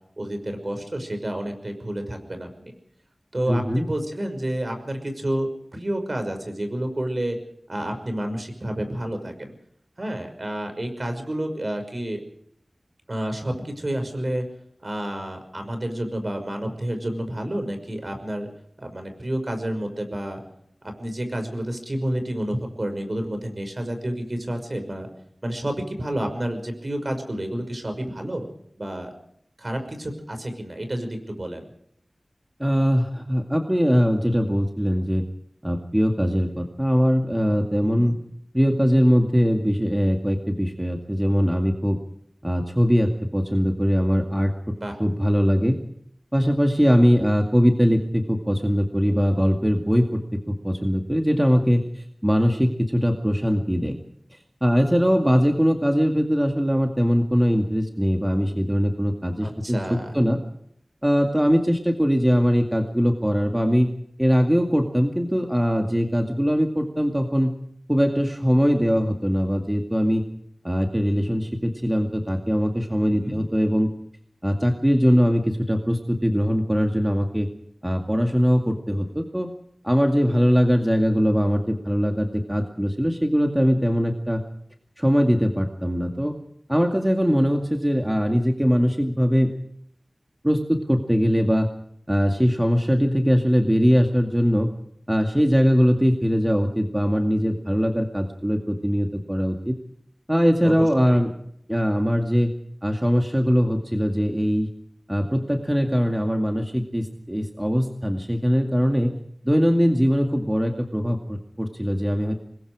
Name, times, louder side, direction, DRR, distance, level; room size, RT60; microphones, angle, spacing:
voice 1, 0.2-2.7 3.3-7.4 7.7-9.5 10.0-12.2 13.1-14.4 14.8-18.5 18.8-20.4 21.0-25.1 25.4-28.4 28.8-29.1 29.6-31.6 37.8-38.1 44.8-45.0 59.4-60.2 73.0-73.4 100.6-101.2, right 1 dB, 45° right, 5 dB, 5.7 m, -30 dB
voice 2, 3.5-3.9 32.6-35.2 35.6-38.2 38.5-42.0 42.4-44.7 45.0-45.8 46.3-54.0 54.6-59.8 60.1-60.4 61.0-63.9 64.2-67.5 67.9-70.2 70.6-73.9 74.4-77.5 77.8-79.5 79.8-84.4 85.0-86.3 86.7-89.5 90.4-91.7 92.1-94.7 95.1-99.8 100.3-101.3 101.7-102.5 102.8-104.7 105.1-109.1 109.4-112.3, equal, 10° right, 3 dB, 2.2 m, -21 dB
26.0 x 21.5 x 4.9 m, 0.70 s
wide cardioid pair, 55°, 0 cm